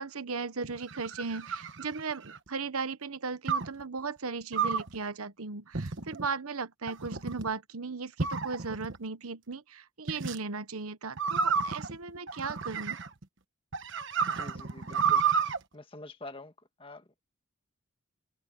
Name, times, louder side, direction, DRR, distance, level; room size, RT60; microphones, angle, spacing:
voice 1, 0.0-13.0, right 4 dB, 75° right, 1.1 m, -37 dB
sound 1, 0.6-2.5 3.5-3.8 4.5-5.0 5.7-6.3 6.9-7.5 8.2-9.0 10.1-10.4 11.2-13.2 13.7-15.6, right 6 dB, 55° right, 1.3 m, -31 dB
voice 2, 14.2-15.2 15.7-16.5 16.8-17.2, left 2 dB, 25° left, 1.6 m, -46 dB
head